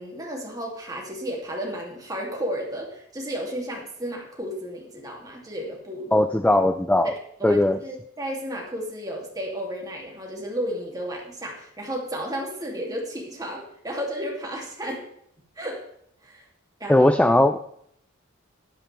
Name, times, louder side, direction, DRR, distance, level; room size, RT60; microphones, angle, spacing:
voice 1, 0.0-6.2 7.4-15.0 15.6-15.8 16.2-16.4 16.8-17.1, equal, 20° right, -1 dB, 2.8 m, -33 dB
voice 2, 6.1-7.1 7.4-7.8 16.9-17.6, left 1 dB, 5° left, 9 dB, 0.3 m, -18 dB
12.5 x 11.5 x 3.5 m, 0.69 s
head